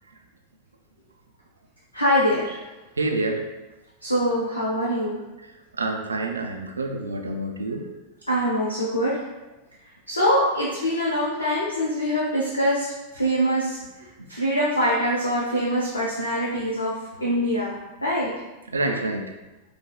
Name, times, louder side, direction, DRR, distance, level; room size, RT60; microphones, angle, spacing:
voice 1, 1.9-2.6 4.0-5.2 8.3-9.2 10.1-13.8 14.3-18.3, equal, 80° left, -5 dB, 0.5 m, -24 dB
voice 2, 3.0-3.5 5.4-7.9 14.2-14.3 18.7-19.3, right 2 dB, 75° right, 4 dB, 0.3 m, -28 dB
4.8 x 2.0 x 2.2 m, 1.1 s
figure-of-eight pair, 90°, 0 cm